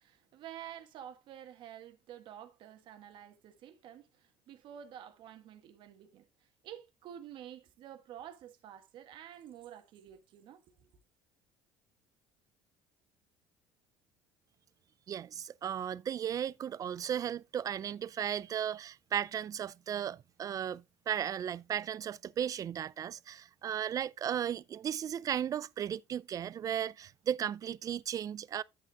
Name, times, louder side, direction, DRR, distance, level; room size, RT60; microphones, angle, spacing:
voice 1, 0.0-6.3 6.6-10.9, right 10 dB, 65° right, 1.4 m, -50 dB
voice 2, 15.1-28.6, right 9 dB, 40° right, 0.4 m, -35 dB
10.0 x 8.1 x 2.3 m
supercardioid pair, 80°, 9 cm